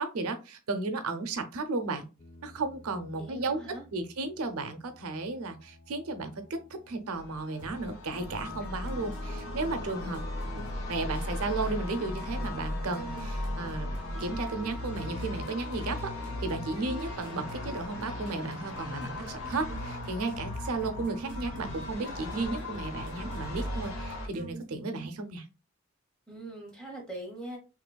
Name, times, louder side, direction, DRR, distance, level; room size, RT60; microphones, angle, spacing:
voice 1, 0.0-2.0 2.4-3.6 3.9-6.6 6.9-10.2 10.6-13.9 14.2-25.5, right 3 dB, 90° right, 0.6 m, -34 dB
sound 1, 2.2-19.3, left 2 dB, 30° left, 0.3 m, -52 dB
voice 2, 3.2-3.8 26.3-27.6, right 1 dB, 5° left, 0.9 m, -41 dB
sound 2, 7.1-24.3, left 1 dB, 75° left, 0.8 m, -37 dB
sound 3, 7.6-25.1, right 2 dB, 40° right, 0.4 m, -48 dB
3.1 x 2.9 x 2.2 m
head